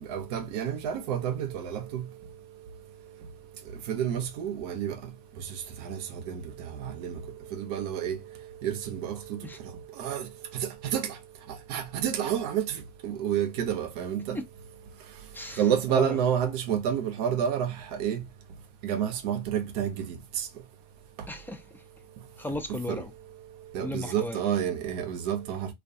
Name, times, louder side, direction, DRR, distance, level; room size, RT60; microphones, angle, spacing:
voice 1, 0.1-2.0 3.9-5.0 5.8-6.0 6.3-6.4 6.8-7.2 7.6-8.2 8.6-9.4 10.0-10.2 10.5-11.1 11.7-14.4 15.6-17.7 18.0-18.2 18.8-20.2 22.9-23.0 23.7-25.7, right 9 dB, 80° right, 0.6 m, -29 dB
voice 2, 15.3-16.2 21.3-21.8 22.4-23.1 23.8-24.4, left 2 dB, 10° left, 0.5 m, -35 dB
2.3 x 2.3 x 2.6 m
supercardioid pair, 95°, 20 cm